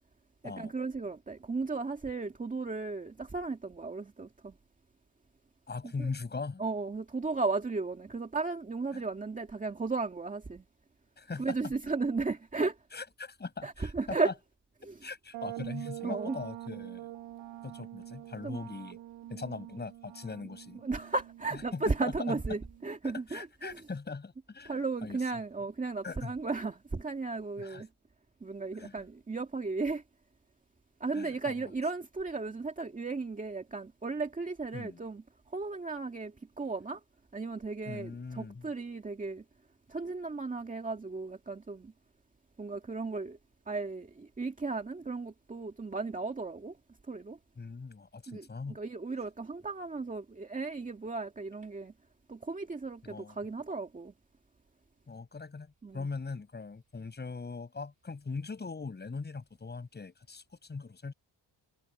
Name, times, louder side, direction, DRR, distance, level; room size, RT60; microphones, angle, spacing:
voice 1, 0.4-4.5 6.0-6.1 6.6-10.6 11.4-12.8 13.6-14.3 14.9-15.0 16.0-16.4 18.4-18.6 20.8-23.8 24.7-27.9 28.4-30.0 31.0-35.2 35.5-37.0 37.3-39.4 39.9-41.9 42.6-43.4 43.7-46.8 47.1-47.4 48.3-51.9 52.3-54.1 55.8-56.1, right 3 dB, 20° right, 2.2 m, -35 dB
voice 2, 5.7-6.6 8.9-9.0 11.2-11.7 12.9-14.3 15.0-17.1 17.6-19.0 19.3-20.8 21.7-22.4 23.0-25.2 26.0-26.3 27.6-27.8 28.7-29.0 31.1-31.7 34.7-35.0 37.9-38.7 47.6-48.8 53.0-53.4 55.1-61.1, left 4 dB, 25° left, 7.9 m, -40 dB
sound 1, 15.3-23.0, right 14 dB, 80° right, 1.8 m, -45 dB
cardioid pair, 155°, 43 cm